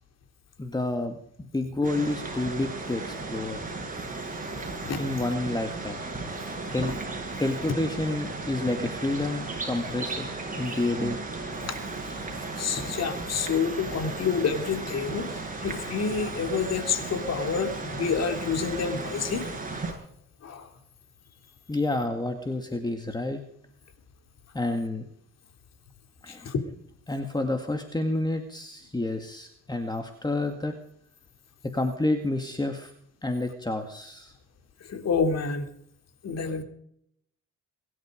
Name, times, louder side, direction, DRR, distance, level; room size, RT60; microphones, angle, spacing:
voice 1, 0.6-3.6 5.0-6.0 6.7-6.9 7.4-10.3 10.6-11.2 21.7-23.4 24.5-25.0 26.2-26.5 27.1-30.7 31.6-32.9 33.2-34.3, left 2 dB, 15° left, 5 dB, 2.1 m, -29 dB
sound 1, 1.8-19.9, right 3 dB, 25° right, 7.9 m, -35 dB
voice 2, 12.5-19.5 20.4-20.7 26.3-26.6 34.8-35.7 36.2-36.6, left 5 dB, 55° left, 6 dB, 3.2 m, -28 dB
23.0 x 12.0 x 5.2 m, 0.70 s
cardioid pair, 90°, 30 cm